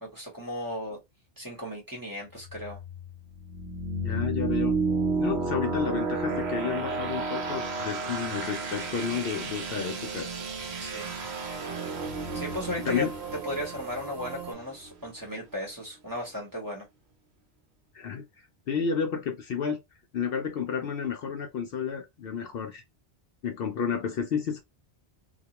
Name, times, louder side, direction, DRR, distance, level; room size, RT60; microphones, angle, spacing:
voice 1, 0.0-1.0 1.4-2.8 10.8-11.1 12.3-13.0 13.4-16.9, left 1 dB, 20° right, 0.9 m, -35 dB
sound 1, 2.4-15.1, right 3 dB, 70° right, 0.9 m, -32 dB
voice 2, 4.0-4.8 5.2-10.3 12.8-13.1 17.9-18.3 18.7-19.8 20.1-22.8 23.4-24.6, left 6 dB, 65° left, 0.7 m, -31 dB
sound 2, 6.1-14.5, right 8 dB, 50° right, 0.7 m, -43 dB
2.3 x 2.2 x 2.8 m
omnidirectional pair, 1.1 m